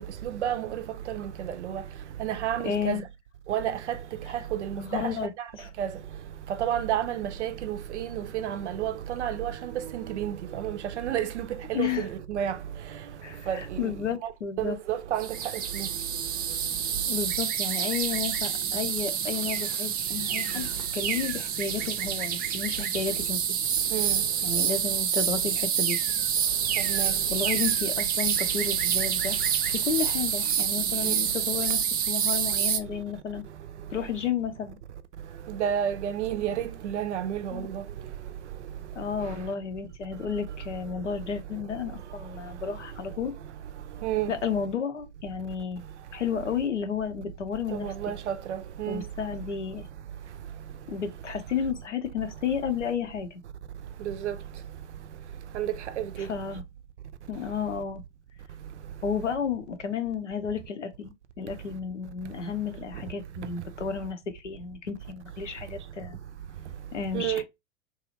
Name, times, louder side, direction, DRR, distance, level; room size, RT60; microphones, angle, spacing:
voice 1, 0.2-1.8 2.2-3.0 3.5-4.0 4.3-5.0 5.8-5.9 6.6-12.6 13.5-13.9 14.2-14.3 14.6-15.9 23.9-24.2 26.8-27.1 31.0-31.1 35.5-37.8 44.0-44.3 47.7-49.0 54.0-54.4 55.5-56.3 67.1-67.4, right 10 dB, 75° right, 0.5 m, -31 dB
voice 2, 2.6-3.0 4.8-5.3 5.6-5.7 11.7-12.1 13.2-14.8 17.1-23.4 24.4-26.0 26.9-27.0 27.3-29.4 29.6-33.4 33.9-34.8 37.5-37.7 39.0-43.3 44.3-45.8 46.1-47.9 48.9-49.9 50.9-53.4 56.2-56.6 57.3-58.0 59.0-66.2 66.9-67.4, left 7 dB, 90° left, 0.7 m, -32 dB
sound 1, 15.2-32.8, right 8 dB, 25° right, 0.4 m, -27 dB
2.7 x 2.3 x 2.8 m
figure-of-eight pair, 85°, 35 cm